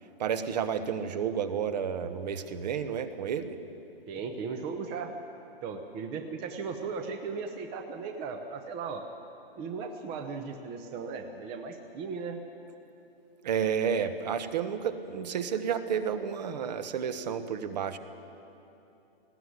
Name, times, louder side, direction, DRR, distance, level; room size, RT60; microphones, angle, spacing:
voice 1, 0.2-3.6 13.4-18.0, right 7 dB, 45° right, 10 dB, 1.2 m, -31 dB
voice 2, 4.1-5.1 5.6-9.0 9.6-12.4, right 5 dB, 15° right, 5 dB, 0.8 m, -37 dB
19.5 x 16.0 x 9.6 m, 2.8 s
hypercardioid pair, 155°, 30 cm